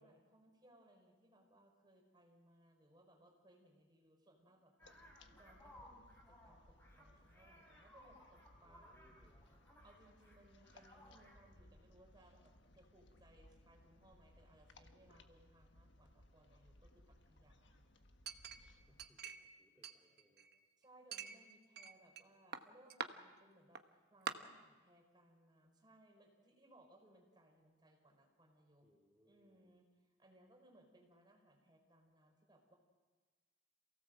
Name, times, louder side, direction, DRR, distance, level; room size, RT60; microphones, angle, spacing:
voice 1, 0.0-9.0 9.8-17.9 20.8-28.9 29.2-32.8, right 1 dB, 25° right, 1 dB, 5.3 m, -67 dB
sound 1, 4.8-19.1, left 1 dB, 65° left, 1.5 m, -65 dB
sound 2, 4.8-10.4 10.6-11.4, equal, 10° left, 5.3 m, -62 dB
voice 2, 8.6-9.4 18.8-20.5 28.8-29.8, equal, 10° right, -6 dB, 3.3 m, -72 dB
Chink clink, 18.3-19.5 19.8-20.6 21.1-22.2 22.5-23.1 23.8-23.9 24.3-24.4, right 6 dB, 60° right, 1.1 m, -46 dB
27.5 x 17.5 x 7.8 m, 1.3 s
head